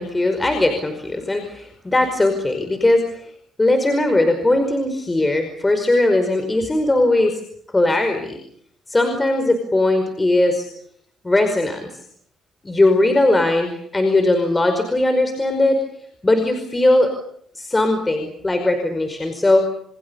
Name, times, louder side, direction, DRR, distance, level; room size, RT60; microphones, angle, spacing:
voice 1, 0.0-3.3 3.6-7.4 7.7-8.4 8.9-10.7 11.2-11.9 12.6-15.8 16.2-17.1 17.5-19.6, left 2 dB, 20° left, 6 dB, 5.1 m, -19 dB
28.5 x 26.5 x 7.1 m, 0.67 s
cardioid pair, 100°, 0 cm